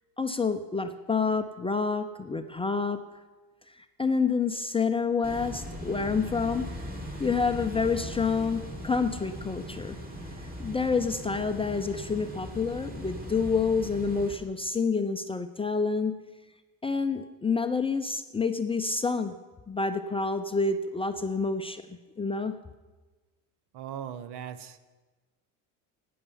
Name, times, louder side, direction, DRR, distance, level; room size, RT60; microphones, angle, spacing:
voice 1, 0.2-3.0 3.7-6.7 7.2-10.0 10.4-16.2 16.8-19.4 19.7-22.6, left 4 dB, 15° left, 7 dB, 0.5 m, -28 dB
sound 1, 5.2-14.3, equal, 20° right, 3.0 m, -39 dB
voice 2, 23.7-24.8, right 9 dB, 65° right, 13 dB, 1.0 m, -39 dB
11.0 x 9.4 x 7.1 m, 1.2 s
cardioid pair, 115°, 43 cm